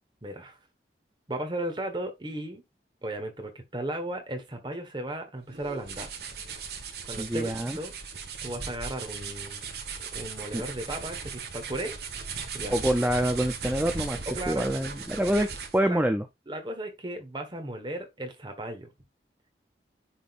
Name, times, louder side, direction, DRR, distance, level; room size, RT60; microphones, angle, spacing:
voice 1, 0.2-0.6 1.3-2.6 3.0-6.1 7.0-7.9 8.4-9.7 10.1-11.9 12.5-12.7 14.2-14.7 15.8-16.0 16.5-18.9, right 1 dB, 25° right, 1.3 m, -35 dB
sound 1, 5.5-15.9, right 5 dB, 65° right, 1.3 m, -37 dB
voice 2, 7.2-7.8 10.5-10.6 12.7-16.2, right 1 dB, 10° right, 0.5 m, -26 dB
10.0 x 3.7 x 2.5 m
head